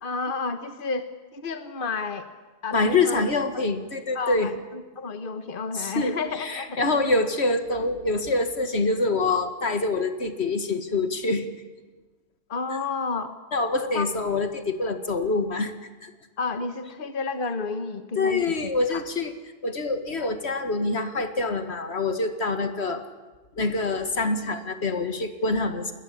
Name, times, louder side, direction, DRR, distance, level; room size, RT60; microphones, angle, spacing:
voice 1, 0.0-2.3 2.6-3.2 3.5-3.6 4.1-7.1 12.5-13.3 13.9-14.1 16.4-18.6 18.9-19.0, left 4 dB, 55° left, 9 dB, 1.5 m, -31 dB
voice 2, 2.7-4.5 5.7-11.5 13.5-15.7 16.0-16.1 18.2-19.3 19.6-23.0 23.6-25.9, left 3 dB, 80° left, 8 dB, 2.2 m, -25 dB
29.5 x 21.0 x 8.6 m, 1.3 s
omnidirectional pair, 1.1 m